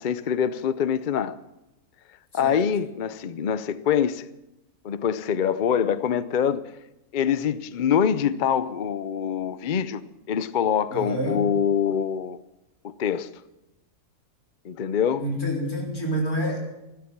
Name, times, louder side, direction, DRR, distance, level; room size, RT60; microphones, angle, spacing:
voice 1, 0.0-1.3 2.3-4.3 4.8-6.6 7.1-10.0 10.3-12.4 12.8-13.3 14.6-15.2, left 8 dB, 50° left, 0.6 m, -24 dB
voice 2, 10.9-11.4 15.2-16.6, equal, 80° left, 4.6 m, -28 dB
15.5 x 12.5 x 7.3 m
omnidirectional pair, 1.5 m